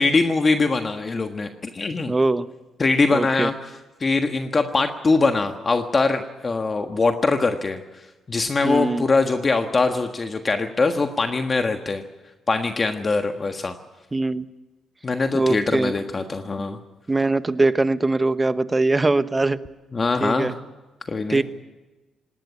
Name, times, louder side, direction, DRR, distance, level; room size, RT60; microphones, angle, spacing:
voice 1, 0.0-2.1 2.8-3.5 4.0-7.8 8.3-12.0 12.5-13.7 15.0-16.8 19.9-20.5 21.1-21.4, left 3 dB, 30° left, 5 dB, 1.5 m, -22 dB
voice 2, 2.1-2.5 3.1-3.5 8.6-9.0 14.1-14.4 15.3-15.9 17.1-19.6 20.2-20.5 21.3-21.4, right 2 dB, 20° right, 12 dB, 1.0 m, -21 dB
18.5 x 18.5 x 9.8 m, 1.1 s
cardioid pair, 90°, 0 cm